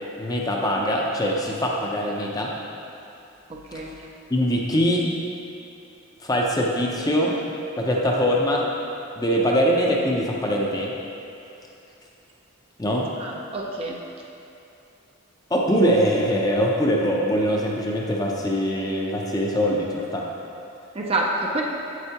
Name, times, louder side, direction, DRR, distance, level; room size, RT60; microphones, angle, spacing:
voice 1, 0.2-2.5 4.3-5.1 6.2-7.3 7.8-8.7 9.2-10.9 12.8-13.1 15.5-20.3, equal, 15° left, -2 dB, 0.6 m, -22 dB
voice 2, 3.5-4.0 13.2-14.0 20.9-21.6, right 2 dB, 25° right, -1 dB, 0.4 m, -27 dB
8.0 x 7.9 x 2.9 m, 2.7 s
head